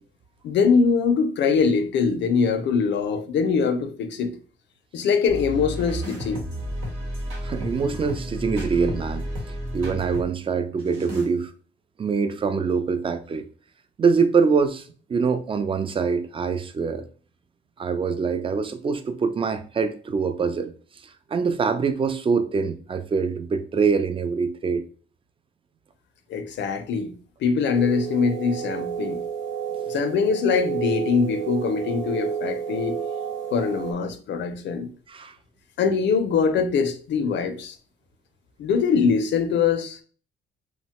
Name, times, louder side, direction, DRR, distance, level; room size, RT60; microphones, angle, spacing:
voice 1, 0.4-4.4 4.9-6.4 26.3-29.2 29.9-33.0 33.5-34.9 35.8-37.8 38.6-40.0, left 5 dB, 65° left, 0.5 m, -23 dB
sound 1, 5.3-10.3 10.8-11.3, equal, 85° right, 1.2 m, -32 dB
voice 2, 7.4-9.3 9.7-11.5 12.0-13.4 14.0-17.0 17.8-20.7 21.3-24.8 29.8-29.9 35.1-35.3, right 5 dB, 25° right, 0.4 m, -24 dB
sound 2, 27.7-33.9, right 7 dB, 70° right, 0.7 m, -31 dB
2.9 x 2.1 x 2.9 m
cardioid pair, 90°, 20 cm